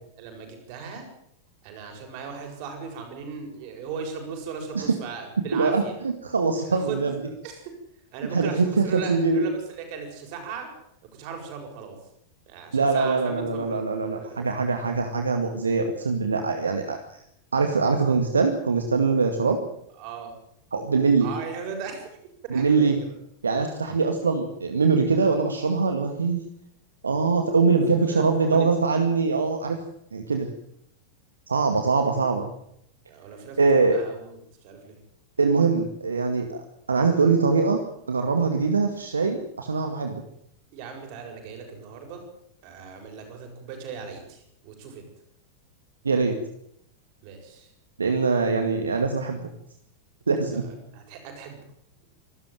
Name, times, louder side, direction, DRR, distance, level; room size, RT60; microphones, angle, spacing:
voice 1, 0.2-1.1 1.6-6.0 6.6-7.7 8.1-10.7 11.1-12.0 12.5-14.6 20.0-20.3 21.2-22.1 22.4-23.1 27.7-27.8 28.1-28.7 31.6-31.8 33.1-35.0 40.7-42.3 42.6-45.1 47.2-47.7 50.4-51.6, right 6 dB, 45° right, 4 dB, 7.6 m, -38 dB
voice 2, 5.5-7.1 8.3-9.4 12.7-17.2 17.5-19.6 20.7-21.3 22.5-23.0 23.4-26.4 27.0-29.8 30.1-30.5 31.5-32.5 33.6-34.0 35.4-36.6 36.9-37.8 38.1-40.2 46.0-46.4 48.0-49.5 50.3-50.6, right 4 dB, 75° right, 6 dB, 2.2 m, -23 dB
26.0 x 13.5 x 9.3 m, 0.73 s
figure-of-eight pair, 90°, 0 cm